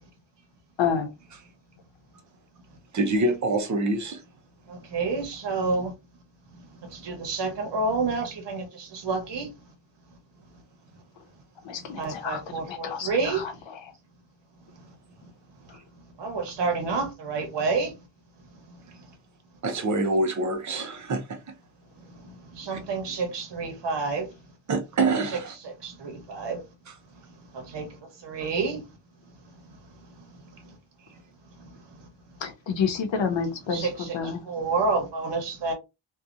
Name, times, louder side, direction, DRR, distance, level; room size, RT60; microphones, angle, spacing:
voice 1, 2.9-4.2 19.6-21.4 22.7-22.8 24.7-25.5 26.9-27.0, right 2 dB, 40° right, 0.6 m, -26 dB
voice 2, 4.7-5.9 6.5-9.5 11.7-13.5 16.2-18.0 18.7-19.1 22.0-24.4 25.8-26.6 27.3-28.8 29.5-30.7 31.6-31.8 33.7-35.7, right 4 dB, 70° right, 1.1 m, -30 dB
voice 3, 11.6-12.4 12.7-13.5 32.7-34.4, left 6 dB, 80° left, 0.8 m, -28 dB
2.8 x 2.3 x 2.4 m
wide cardioid pair, 175°, 44 cm